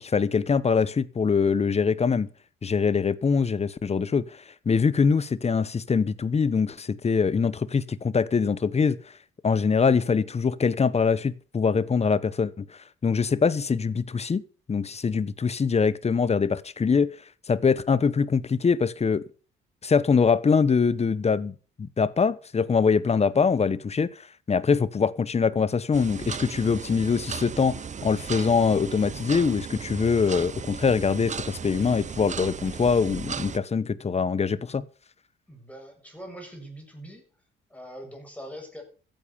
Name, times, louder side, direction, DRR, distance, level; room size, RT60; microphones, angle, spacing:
voice 1, 0.0-2.3 2.6-9.0 9.4-14.4 14.7-17.2 17.5-19.2 19.8-34.8, left 5 dB, 30° left, 1.1 m, -23 dB
sound 1, 25.9-33.6, right 6 dB, 35° right, 1.0 m, -36 dB
voice 2, 35.5-37.2 37.7-38.8, equal, 5° left, 7.5 m, -42 dB
14.5 x 9.2 x 6.9 m
cardioid pair, 90°, 20 cm